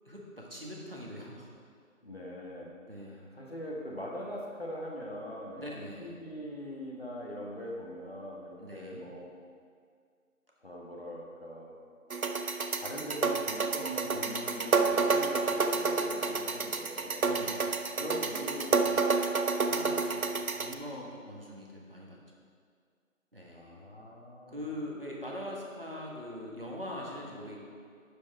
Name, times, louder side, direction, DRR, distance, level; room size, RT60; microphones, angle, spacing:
voice 1, 0.0-1.5 2.9-3.2 5.6-6.2 8.6-9.1 17.2-17.7 19.6-22.2 23.3-23.9 24.5-27.6, left 1 dB, 40° right, -3 dB, 1.5 m, -42 dB
voice 2, 2.0-5.6 6.0-9.3 10.6-11.7 12.7-17.3 18.0-19.4 23.5-24.8, equal, 45° left, -3 dB, 1.5 m, -42 dB
sound 1, 12.1-20.7, right 4 dB, 80° right, 0.8 m, -29 dB
11.5 x 5.3 x 4.7 m, 2.1 s
figure-of-eight pair, 175°, 42 cm